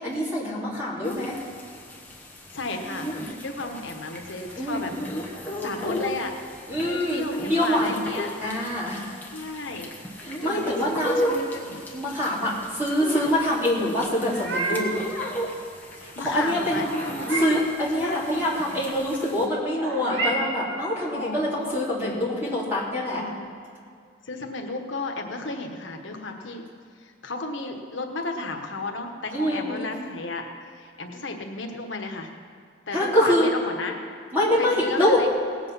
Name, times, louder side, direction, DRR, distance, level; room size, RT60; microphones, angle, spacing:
voice 1, 0.0-1.4 4.6-4.9 6.7-7.9 8.4-9.1 10.2-11.3 11.9-15.0 16.0-16.8 17.3-23.2 29.3-29.9 32.9-33.5 34.3-35.2, left 1 dB, 10° right, -7 dB, 3.2 m, -25 dB
sound 1, 1.0-19.5, equal, 10° left, 1.3 m, -34 dB
voice 2, 2.5-4.9 5.6-6.4 6.8-8.3 9.3-9.9 10.4-10.8 11.2-11.8 16.1-16.9 17.9-18.4 20.0-20.4 21.1-21.8 23.1-23.5 24.2-26.6 27.0-32.3 32.9-34.0 34.6-35.3, left 3 dB, 85° left, 3 dB, 1.3 m, -33 dB
Meow, 14.1-15.0 16.8-17.7 19.7-20.9, right 2 dB, 75° right, 1.9 m, -30 dB
18.0 x 8.1 x 5.6 m, 2.2 s
head